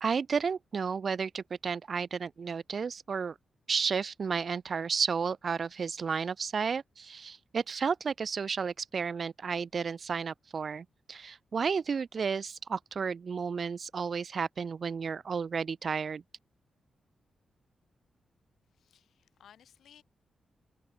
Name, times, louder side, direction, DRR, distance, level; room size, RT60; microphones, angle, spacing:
voice 1, 0.0-3.3 3.7-16.2, right 5 dB, 40° right, 0.3 m, -32 dB
voice 2, 18.7-20.0, left 9 dB, 85° left, 5.6 m, -59 dB
wide cardioid pair, 175°, 0 cm